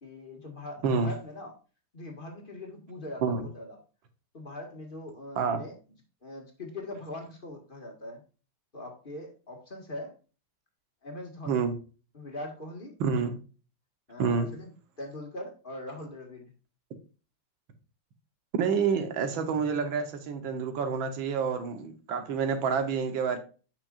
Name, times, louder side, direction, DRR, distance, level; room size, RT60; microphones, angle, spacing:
voice 1, 0.0-1.5 1.9-3.8 4.3-5.7 6.2-8.2 8.7-10.1 11.0-11.7 12.1-12.9 14.1-14.7 15.0-16.5, left 1 dB, 25° left, 1 dB, 1.9 m, -41 dB
voice 2, 0.8-1.1 3.2-3.5 5.4-5.6 11.5-11.8 13.0-13.4 14.2-14.5 18.5-23.4, right 5 dB, 80° right, 8 dB, 1.9 m, -28 dB
8.9 x 6.1 x 2.5 m, 0.35 s
omnidirectional pair, 2.1 m